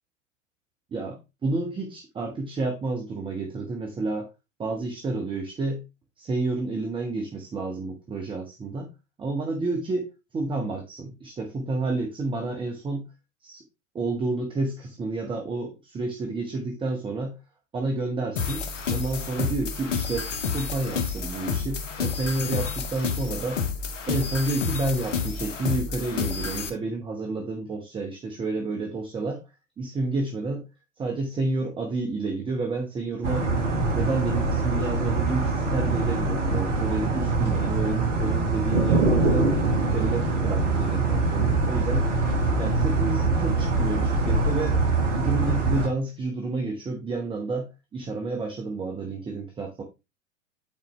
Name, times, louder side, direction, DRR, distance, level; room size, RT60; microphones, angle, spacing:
voice 1, 0.9-4.3 4.6-5.8 6.2-8.9 9.2-13.0 13.4-13.6 13.9-17.4 17.7-23.6 24.1-29.4 29.8-30.6 31.0-33.5 33.9-39.5 39.8-42.1 42.6-44.8 45.1-49.8, right 3 dB, 15° right, 2 dB, 1.0 m, -30 dB
sound 1, 18.4-26.7, left 5 dB, 65° left, 1.2 m, -30 dB
sound 2, 33.2-45.9, right 3 dB, 65° right, 1.5 m, -24 dB
8.7 x 4.3 x 3.1 m, 0.25 s
figure-of-eight pair, 95°, 39 cm